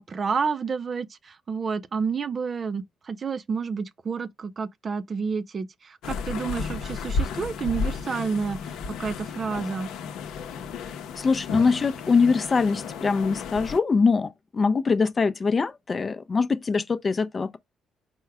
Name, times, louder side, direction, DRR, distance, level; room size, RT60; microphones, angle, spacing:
voice 1, 0.0-9.9, right 5 dB, 40° right, 0.4 m, -30 dB
sound 1, 6.0-13.8, left 5 dB, 80° left, 0.7 m, -33 dB
voice 2, 11.2-17.6, left 4 dB, 35° left, 0.5 m, -23 dB
4.5 x 2.1 x 4.7 m
cardioid pair, 80°, 0 cm